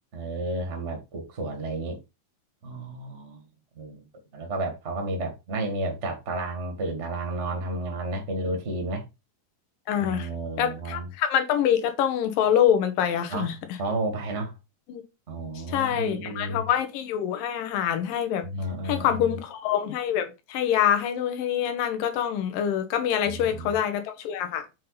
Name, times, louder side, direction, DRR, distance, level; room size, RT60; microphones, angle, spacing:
voice 1, 0.1-2.0 2.6-3.4 3.7-4.0 4.3-9.0 10.0-11.1 13.3-13.5 13.8-14.5 15.3-16.7 18.4-19.4 23.2-23.7, right 2 dB, 30° right, 1.5 m, -32 dB
voice 2, 9.9-10.3 10.6-13.5 14.9-15.0 15.7-18.5 18.8-24.8, left 9 dB, 90° left, 2.7 m, -25 dB
7.3 x 3.9 x 4.1 m
omnidirectional pair, 3.9 m